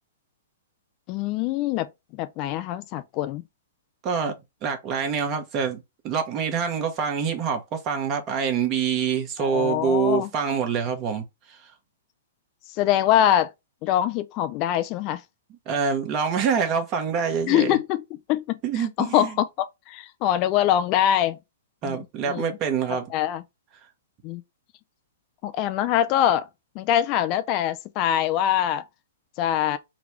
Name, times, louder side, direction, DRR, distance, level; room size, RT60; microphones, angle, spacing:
voice 1, 1.1-3.4 9.4-10.3 12.8-13.5 13.8-15.2 17.5-18.0 18.3-21.4 21.8-22.0 22.2-22.6 23.1-23.4 24.2-24.4 25.4-26.5 26.8-28.8 29.4-29.8, left 11 dB, 40° left, 0.4 m, -24 dB
voice 2, 4.0-4.3 4.6-11.6 15.7-17.8 18.6-19.3 21.8-23.1, right 6 dB, 35° right, 1.0 m, -26 dB
3.9 x 2.3 x 3.0 m
hypercardioid pair, 120°, 0 cm